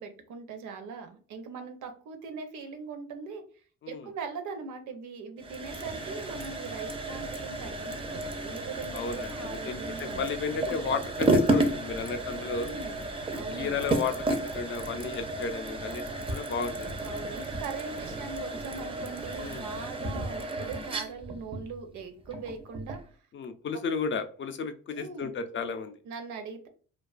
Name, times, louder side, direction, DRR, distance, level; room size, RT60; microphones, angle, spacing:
voice 1, 0.0-10.3 12.6-13.8 16.5-23.0 24.9-25.3 26.0-26.7, right 5 dB, 75° right, 6 dB, 0.6 m, -41 dB
sound 1, 5.4-23.1, right 2 dB, 20° right, 0.4 m, -32 dB
voice 2, 8.9-12.7 13.6-16.9 19.4-19.6 23.3-25.9, left 5 dB, 40° left, 8 dB, 0.4 m, -33 dB
2.4 x 2.3 x 2.3 m, 0.42 s
cardioid pair, 90°, 30 cm